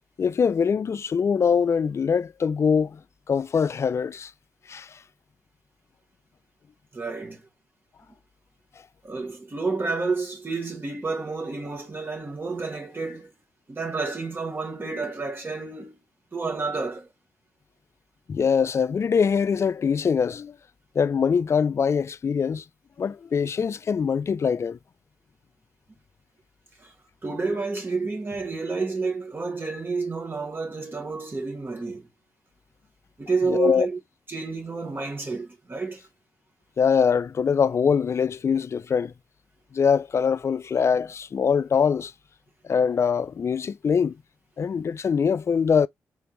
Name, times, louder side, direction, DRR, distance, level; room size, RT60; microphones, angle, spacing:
voice 1, 0.2-3.0 3.3-4.3 4.7-5.0 18.3-20.5 21.0-22.6 23.0-24.8 33.5-33.9 36.8-39.1 39.7-42.1 42.6-44.2 44.6-45.9, left 6 dB, 50° left, 0.3 m, -23 dB
voice 2, 6.9-7.4 9.0-13.3 13.7-16.0 16.3-17.1 26.8-26.9 27.2-32.0 33.2-34.0 34.3-36.1, right 4 dB, 35° right, 1.4 m, -30 dB
3.5 x 3.4 x 2.9 m
supercardioid pair, 50°, 6 cm